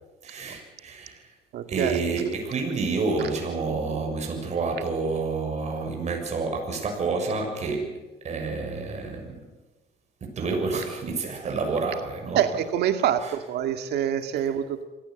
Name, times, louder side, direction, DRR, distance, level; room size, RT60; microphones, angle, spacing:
voice 1, 0.2-1.3 1.7-9.4 10.2-12.4 13.2-13.3 14.4-14.5, right 4 dB, 40° right, 2 dB, 6.9 m, -29 dB
voice 2, 1.5-2.0 12.3-14.8, right 10 dB, 75° right, 8 dB, 2.1 m, -25 dB
26.0 x 17.5 x 8.0 m, 1.2 s
cardioid pair, 110°, 17 cm